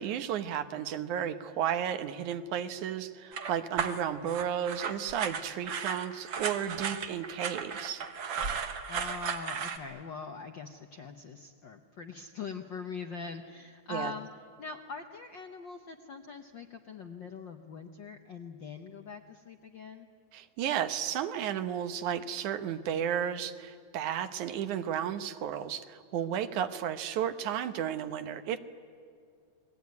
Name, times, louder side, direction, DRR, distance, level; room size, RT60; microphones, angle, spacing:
voice 1, 0.0-8.1 13.9-14.1 20.3-28.6, right 9 dB, 80° right, 10 dB, 2.5 m, -33 dB
sound 1, 3.3-9.8, right 6 dB, 50° right, 1.8 m, -35 dB
voice 2, 8.9-14.3 14.6-20.1, left 5 dB, 65° left, 5 dB, 1.1 m, -42 dB
29.5 x 21.5 x 9.5 m, 2.3 s
omnidirectional pair, 3.5 m